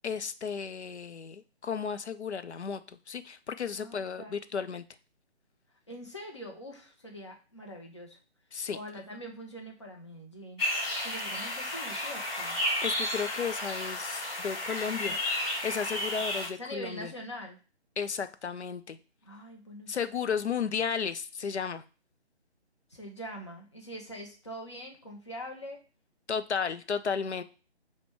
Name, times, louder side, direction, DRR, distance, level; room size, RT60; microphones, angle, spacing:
voice 1, 0.0-2.8 3.1-4.8 8.5-8.8 12.8-15.2 15.6-17.1 18.0-19.0 19.9-21.8 26.3-27.4, left 6 dB, 75° left, 11 dB, 0.5 m, -33 dB
voice 2, 3.7-4.4 5.9-8.2 8.7-10.6 11.0-12.6 14.9-15.2 16.2-17.6 19.2-20.0 22.9-25.8, equal, 25° left, 1 dB, 0.5 m, -43 dB
sound 1, 10.6-16.5, left 1 dB, 55° left, 1.4 m, -32 dB
4.8 x 2.1 x 4.6 m, 0.35 s
figure-of-eight pair, 145°, 34 cm